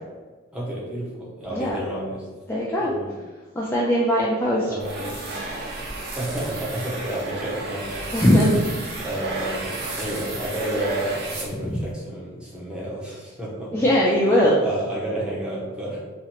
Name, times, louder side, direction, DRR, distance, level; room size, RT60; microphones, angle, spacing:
voice 1, 0.5-2.3 2.8-3.2 4.7-5.2 6.1-8.1 9.0-13.7 14.4-16.0, right 1 dB, 5° right, -6 dB, 0.7 m, -30 dB
voice 2, 2.5-2.9 3.6-4.7 8.1-8.6 13.7-14.6, equal, 10° left, -6 dB, 0.3 m, -20 dB
sound 1, 4.8-11.9, right 2 dB, 55° right, 0.6 m, -33 dB
2.9 x 2.4 x 2.8 m, 1.3 s
head